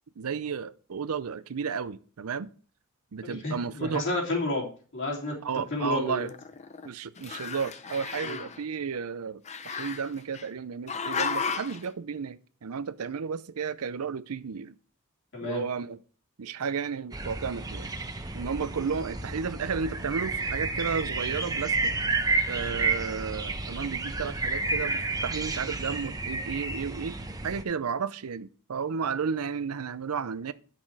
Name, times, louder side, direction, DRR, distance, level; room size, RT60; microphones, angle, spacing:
voice 1, 0.2-2.5 3.1-4.0 5.4-6.3 6.8-14.8 15.4-16.0 16.4-17.9 18.3-21.9 22.5-27.2 27.4-30.5, right 6 dB, 75° right, 0.5 m, -33 dB
voice 2, 3.2-4.7 4.9-5.3 5.7-6.3 8.2-8.4 15.3-15.6, left 2 dB, 60° left, 3.4 m, -31 dB
Growling, 5.6-6.9 7.2-8.6 9.5-10.5 10.9-11.8, left 5 dB, 30° left, 0.6 m, -34 dB
sound 1, 17.1-27.6, right 3 dB, 15° right, 0.8 m, -31 dB
11.0 x 5.9 x 4.7 m
head